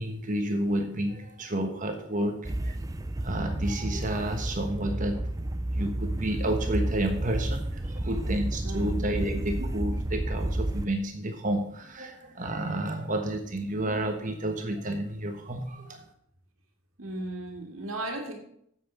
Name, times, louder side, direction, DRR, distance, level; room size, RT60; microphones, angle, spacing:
voice 1, 0.0-2.7 3.2-5.2 5.7-16.0, right 1 dB, 40° right, 5 dB, 1.3 m, -31 dB
sound 1, 2.4-10.9, right 1 dB, 15° right, 0.5 m, -31 dB
voice 2, 8.6-8.9 9.6-9.7 17.0-18.4, right 2 dB, 90° right, 2 dB, 2.2 m, -36 dB
8.5 x 7.8 x 7.0 m, 0.70 s
head